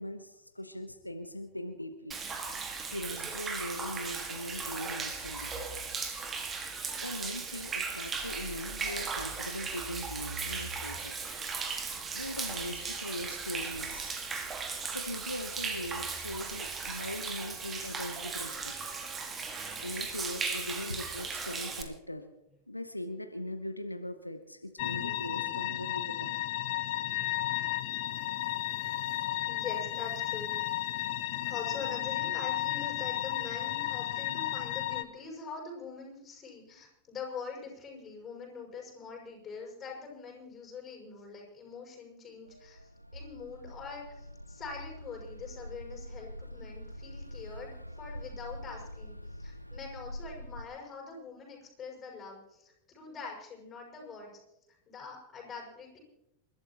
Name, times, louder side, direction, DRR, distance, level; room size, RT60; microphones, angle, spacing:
voice 1, 0.0-2.2 2.9-5.5 7.0-11.1 12.1-14.2 14.9-18.8 19.8-22.3 22.7-26.4, left 1 dB, 85° left, 7 dB, 1.0 m, -40 dB
Human voice / Rain / Stream, 2.1-21.8, right 5 dB, 20° right, 1.9 m, -37 dB
sound 1, 24.8-35.0, left 15 dB, 50° left, 0.9 m, -33 dB
voice 2, 26.9-27.2 29.4-30.6 31.4-42.8 43.1-54.3 54.9-56.0, left 5 dB, 25° left, -1 dB, 6.4 m, -44 dB
sound 2, 42.4-50.6, equal, 90° right, 0.5 m, -45 dB
28.5 x 12.5 x 3.0 m, 0.88 s
figure-of-eight pair, 90°, 0 cm